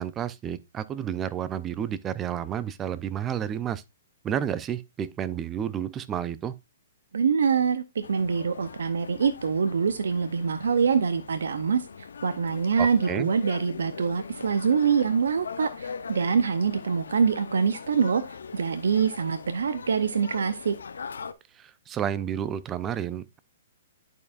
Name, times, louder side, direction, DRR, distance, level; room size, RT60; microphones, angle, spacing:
voice 1, 0.0-3.8 4.2-6.6 12.8-13.3 21.5-23.4, right 9 dB, 20° right, 0.4 m, -31 dB
voice 2, 7.1-20.8, right 6 dB, 80° right, 0.6 m, -25 dB
sound 1, 8.0-21.3, left 5 dB, 85° left, 0.6 m, -41 dB
11.0 x 4.6 x 2.4 m
hypercardioid pair, 140°, 0 cm